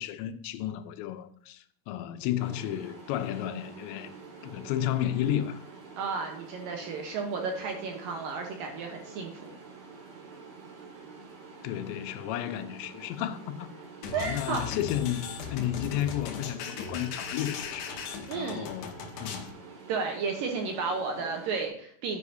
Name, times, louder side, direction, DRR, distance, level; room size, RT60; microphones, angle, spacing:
voice 1, 0.0-4.1 4.4-5.6 11.6-13.7 14.1-17.9 18.4-19.5, left 12 dB, 90° left, 3.0 m, -32 dB
sound 1, 2.4-21.7, right 4 dB, 55° right, 1.6 m, -47 dB
voice 2, 6.0-9.6 14.1-14.7 18.3-18.7 19.9-22.2, right 4 dB, 75° right, 2.2 m, -33 dB
sound 2, 14.0-19.5, left 5 dB, 70° left, 2.0 m, -39 dB
9.8 x 9.2 x 2.7 m
omnidirectional pair, 5.1 m